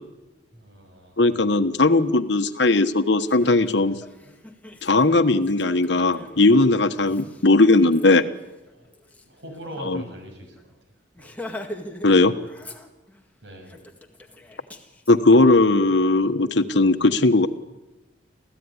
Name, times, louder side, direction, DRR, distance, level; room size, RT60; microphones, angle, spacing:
voice 1, 0.5-1.2 8.7-8.9 9.2-10.7 11.2-11.4 13.4-13.8 15.4-15.5, equal, 65° right, 4 dB, 7.1 m, -41 dB
voice 2, 1.2-4.0 4.8-8.2 9.8-10.0 12.0-12.3 15.1-17.5, left 2 dB, 65° left, 10 dB, 1.3 m, -18 dB
Laughter, 2.7-2.8 3.2-9.8 10.2-10.3 10.6-10.7 11.1-12.1 12.4-13.2 13.6-15.1, left 1 dB, 10° left, 1.9 m, -42 dB
27.5 x 16.0 x 9.8 m, 1.0 s
head